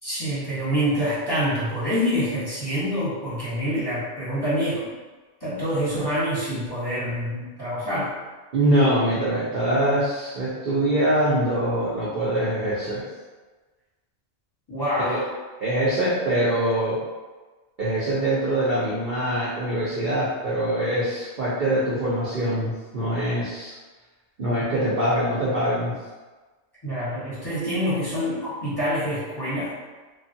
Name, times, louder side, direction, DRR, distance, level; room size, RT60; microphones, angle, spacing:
voice 1, 0.0-4.9 5.4-8.1 14.7-15.2 26.8-29.7, equal, 20° left, -11 dB, 1.0 m, -26 dB
voice 2, 8.5-13.0 15.0-15.2 15.6-17.0 17.8-23.7 24.4-25.9, right 1 dB, 50° right, -8 dB, 0.6 m, -23 dB
3.1 x 2.2 x 2.7 m, 1.3 s
omnidirectional pair, 1.4 m